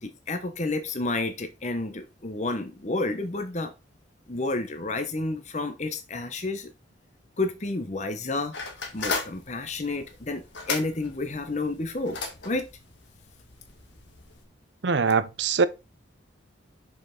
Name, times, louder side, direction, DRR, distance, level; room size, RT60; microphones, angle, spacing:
voice 1, 0.0-3.7 4.3-6.7 7.4-8.5 8.9-12.7, left 2 dB, 35° left, 0.9 m, -30 dB
sound 1, 8.5-14.4, left 4 dB, 70° left, 1.8 m, -36 dB
voice 2, 14.8-15.7, right 5 dB, 65° right, 0.6 m, -22 dB
6.7 x 5.5 x 3.8 m
head